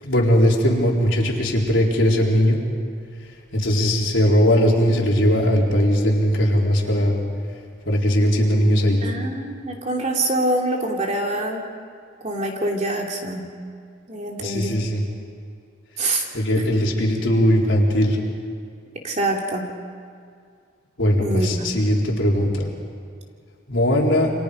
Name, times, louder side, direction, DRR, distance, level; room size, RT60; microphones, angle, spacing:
voice 1, 0.0-2.6 3.5-7.2 7.8-9.0 14.4-15.0 16.3-18.2 21.0-22.7 23.7-24.3, equal, 75° left, -2 dB, 4.1 m, -19 dB
voice 2, 9.0-11.6 12.2-13.4 14.1-14.8 16.0-16.2 16.6-16.7 19.0-19.7 21.2-21.7, right 1 dB, 35° right, 0 dB, 2.9 m, -25 dB
29.0 x 26.0 x 5.3 m, 2.2 s
head